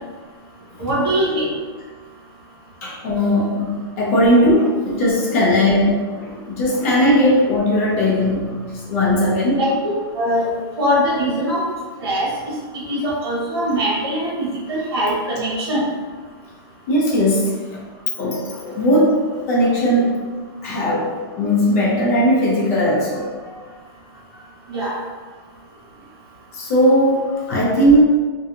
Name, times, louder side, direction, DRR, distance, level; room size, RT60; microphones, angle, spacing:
voice 1, 0.8-1.4 9.5-10.5 10.8-11.6 12.0-12.3 12.9-15.8 24.7-24.9, equal, 65° right, -5 dB, 1.1 m, -21 dB
voice 2, 2.8-9.6 16.9-17.8 18.2-19.2 19.5-20.2 20.6-21.1 21.4-23.7 24.3-24.4 24.7-25.0 26.5-27.2 27.5-28.0, equal, 35° left, -4 dB, 0.6 m, -18 dB
2.8 x 2.3 x 2.5 m, 1.4 s
hypercardioid pair, 165°, 14 cm